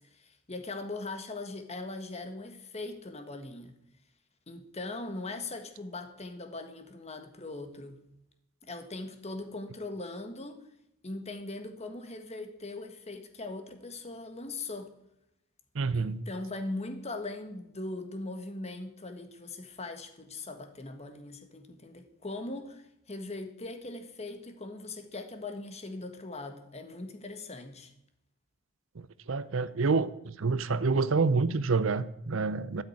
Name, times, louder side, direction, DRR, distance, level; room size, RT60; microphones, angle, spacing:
voice 1, 0.0-3.7 4.5-8.0 8.6-10.6 11.0-14.9 15.9-27.9, left 2 dB, 30° left, 1.6 m, -40 dB
voice 2, 15.7-16.2 29.3-32.8, right 4 dB, 65° right, 0.6 m, -27 dB
13.0 x 6.5 x 9.9 m
head